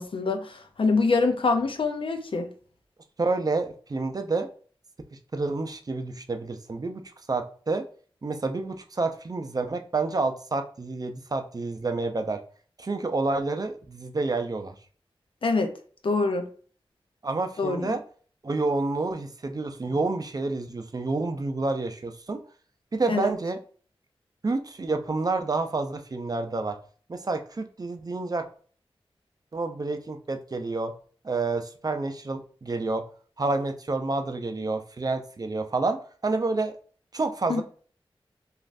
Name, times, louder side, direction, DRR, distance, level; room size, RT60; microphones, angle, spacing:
voice 1, 0.0-2.5 15.4-15.7 16.0-16.5 17.6-17.9 23.1-23.3 37.5-37.6, left 3 dB, 65° left, 0.5 m, -25 dB
voice 2, 3.2-4.5 5.3-7.0 7.3-7.8 8.2-12.4 12.8-14.7 17.2-18.0 18.4-22.4 22.9-23.6 24.4-26.8 27.1-28.5 29.5-30.9 31.2-33.0 33.4-36.8 37.1-37.6, right 3 dB, 40° right, 0.5 m, -29 dB
3.1 x 2.4 x 2.5 m
cardioid pair, 45°, 10 cm